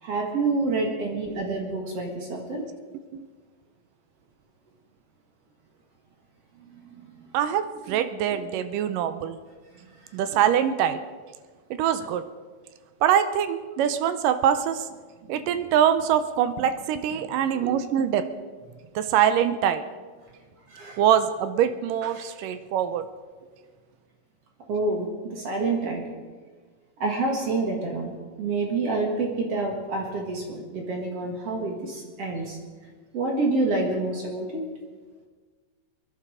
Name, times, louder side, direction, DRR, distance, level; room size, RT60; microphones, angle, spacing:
voice 1, 0.0-2.6 6.6-7.1 16.6-16.7 20.7-21.0 22.1-22.3 24.7-26.0 27.0-32.6 33.1-34.6, right 3 dB, 50° right, 0 dB, 2.2 m, -28 dB
voice 2, 7.3-9.4 10.1-11.0 11.7-12.3 13.0-14.9 15.3-18.3 19.0-19.8 21.0-23.1, right 9 dB, 80° right, 11 dB, 2.0 m, -24 dB
22.5 x 11.5 x 4.9 m, 1.5 s
omnidirectional pair, 4.4 m